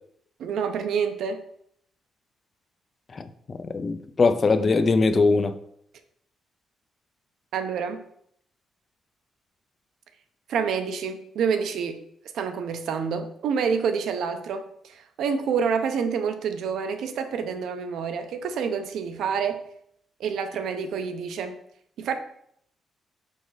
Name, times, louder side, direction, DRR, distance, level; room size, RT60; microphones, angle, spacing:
voice 1, 0.4-1.4 7.5-8.0 10.5-12.0 12.3-19.6 20.2-21.6 22.0-22.2, right 6 dB, 70° right, 0.6 m, -28 dB
voice 2, 3.2-5.5, left 3 dB, 25° left, 0.3 m, -22 dB
5.1 x 5.0 x 3.9 m
cardioid pair, 175°, 0 cm